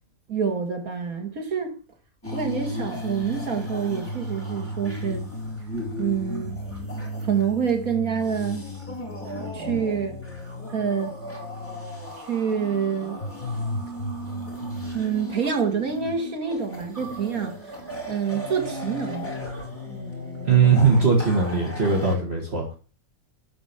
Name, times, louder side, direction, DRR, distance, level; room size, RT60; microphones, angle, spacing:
voice 1, 0.3-1.8 2.3-5.2 6.0-6.6 7.2-8.7 9.5-10.2 10.7-11.1 12.2-13.2 14.9-17.5 18.1-19.3, right 7 dB, 75° right, 2.6 m, -27 dB
sound 1, 2.2-22.1, left 1 dB, 10° left, 4.2 m, -34 dB
voice 2, 20.4-22.6, right 5 dB, 45° right, 2.4 m, -19 dB
11.5 x 5.2 x 7.2 m
omnidirectional pair, 1.5 m